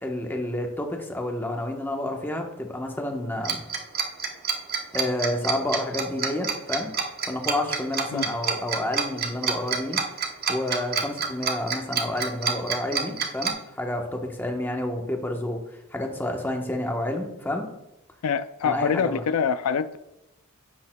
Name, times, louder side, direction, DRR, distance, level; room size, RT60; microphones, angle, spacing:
voice 1, 0.0-3.6 4.9-6.9 7.3-10.0 10.5-15.6 15.9-17.7 18.6-19.2, left 1 dB, 10° left, 2 dB, 1.0 m, -29 dB
Tick-tock, 3.4-13.5, right 6 dB, 45° right, 0.9 m, -27 dB
voice 2, 18.2-20.0, left 7 dB, 85° left, 13 dB, 0.4 m, -25 dB
10.5 x 8.5 x 2.2 m, 0.91 s
head